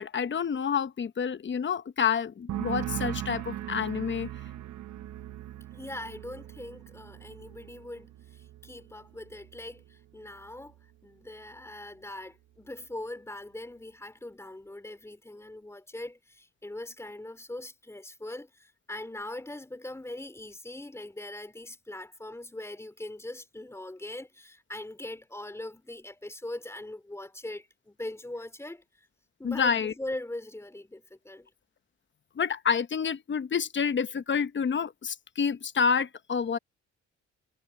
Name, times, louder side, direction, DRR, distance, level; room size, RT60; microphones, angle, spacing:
voice 1, 0.0-4.3 29.4-29.9 32.4-36.6, left 6 dB, 40° left, 1.0 m, -28 dB
sound 1, 2.5-9.9 10.2-10.8, right 13 dB, 70° right, 0.9 m, -39 dB
voice 2, 5.7-10.8 11.0-29.1 29.4-31.5, left 1 dB, 10° left, 3.2 m, -41 dB
cardioid pair, 90°, 30 cm